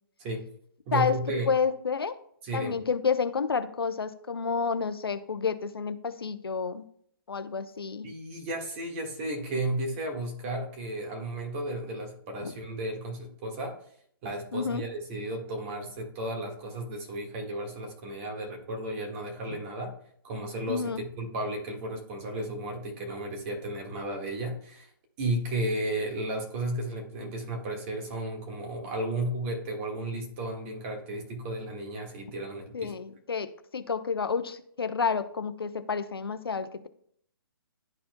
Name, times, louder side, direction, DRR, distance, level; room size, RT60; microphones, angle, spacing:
voice 1, 0.9-1.5 2.4-2.8 8.0-13.8 14.2-19.9 20.2-24.9 25.2-32.9, right 1 dB, 30° right, 2 dB, 1.7 m, -34 dB
voice 2, 1.5-2.2 2.5-6.8 7.3-8.1 12.4-12.5 14.5-14.8 19.5-19.6 20.7-21.0 32.7-36.9, left 5 dB, 85° left, 12 dB, 0.7 m, -30 dB
11.5 x 4.3 x 2.2 m, 0.64 s
hypercardioid pair, 140°, 12 cm